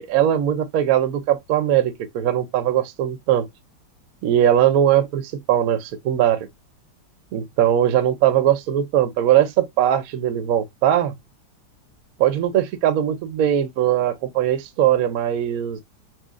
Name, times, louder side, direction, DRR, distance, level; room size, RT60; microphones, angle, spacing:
voice 1, 0.0-3.5 4.2-6.5 7.3-11.1 12.2-15.8, right 11 dB, 70° right, 0.8 m, -20 dB
4.2 x 2.7 x 2.4 m
omnidirectional pair, 2.1 m